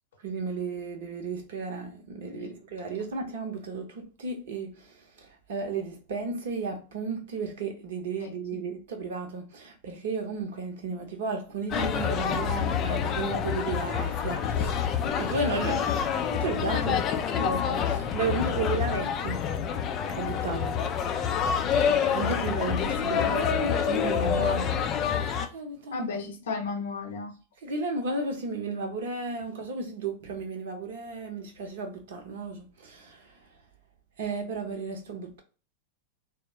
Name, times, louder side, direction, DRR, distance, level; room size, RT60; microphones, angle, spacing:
voice 1, 0.2-4.9 5.2-15.9 16.3-17.0 17.4-19.4 20.2-20.8 21.8-24.8 25.1-25.2 25.5-26.1 27.6-33.3 34.2-35.4, right 3 dB, 55° right, 0.7 m, -33 dB
voice 2, 8.2-8.6 25.9-27.3, left 4 dB, 60° left, 0.7 m, -34 dB
sound 1, 11.7-25.5, left 7 dB, 30° left, 0.4 m, -27 dB
3.5 x 2.0 x 2.8 m
figure-of-eight pair, 90°, 0 cm